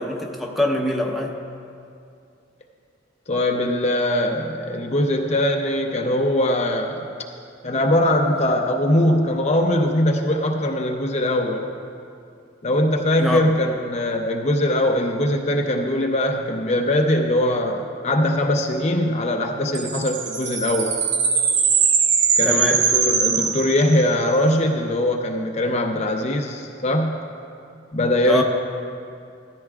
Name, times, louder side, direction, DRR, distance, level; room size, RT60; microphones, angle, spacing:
voice 1, 0.0-1.4 13.2-13.4 22.4-22.9 28.3-28.4, left 1 dB, ahead, 0 dB, 0.8 m, -24 dB
voice 2, 3.3-7.1 7.6-11.7 12.6-21.0 22.4-27.1 27.9-28.4, left 1 dB, 35° left, 2 dB, 0.6 m, -21 dB
sound 1, 19.8-24.4, right 6 dB, 65° right, 0.8 m, -21 dB
16.0 x 13.5 x 2.4 m, 2.4 s
head